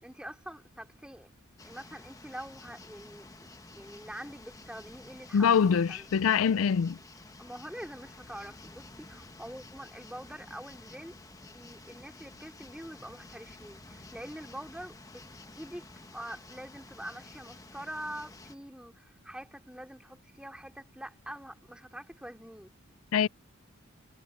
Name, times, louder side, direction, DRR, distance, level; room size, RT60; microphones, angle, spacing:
voice 1, 0.0-1.3 1.6-3.3 3.7-6.1 7.4-11.2 11.4-15.2 15.5-22.7, right 1 dB, 5° right, 3.4 m, -45 dB
sound 1, 1.6-18.5, left 2 dB, 15° left, 1.1 m, -51 dB
voice 2, 5.3-7.0 23.1-23.3, left 7 dB, 80° left, 0.4 m, -24 dB
head